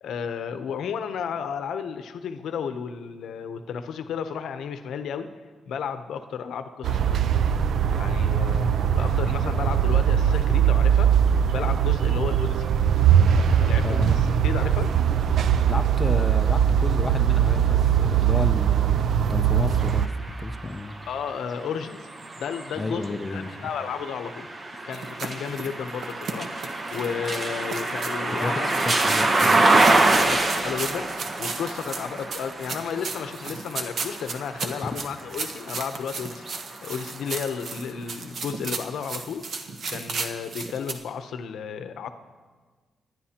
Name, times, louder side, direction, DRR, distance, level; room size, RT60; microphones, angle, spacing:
voice 1, 0.0-5.3 5.7-7.2 7.9-11.1 11.5-12.7 13.4-14.9 21.1-22.1 22.4-24.5 24.8-26.5 26.9-28.8 29.9-39.4 39.9-42.1, left 7 dB, 80° left, 9 dB, 0.7 m, -33 dB
sound 1, 6.8-20.1, right 9 dB, 70° right, 0.4 m, -21 dB
voice 2, 13.8-14.2 15.7-21.0 22.8-23.5 24.7-24.8 28.4-29.6 34.8-34.9, left 2 dB, 15° left, 6 dB, 0.5 m, -32 dB
sound 2, 19.8-35.7 36.3-37.5, right 2 dB, 25° right, 0.9 m, -26 dB
sound 3, 24.9-40.9, right 4 dB, 55° right, 0.9 m, -35 dB
25.5 x 10.5 x 2.9 m, 1.4 s
wide cardioid pair, 145°, 0 cm